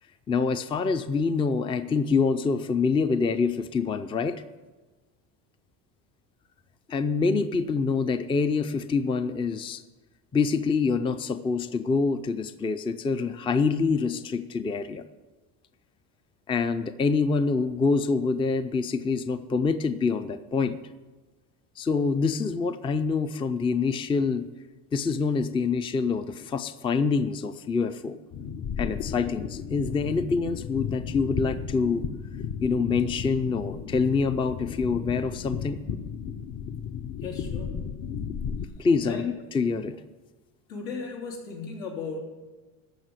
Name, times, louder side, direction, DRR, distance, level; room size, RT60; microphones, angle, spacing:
voice 1, 0.3-4.4 6.9-9.8 10.3-15.1 16.5-20.8 21.8-24.5 24.9-28.2 28.8-32.0 32.6-35.8 38.8-40.0, left 4 dB, 15° left, 11 dB, 0.4 m, -26 dB
sound 1, 28.3-38.7, left 7 dB, 45° left, 0.8 m, -34 dB
voice 2, 37.2-38.0 39.0-39.3 40.7-42.2, left 4 dB, 85° left, -1 dB, 3.5 m, -36 dB
14.0 x 5.6 x 8.1 m, 1.3 s
cardioid pair, 120°, 40 cm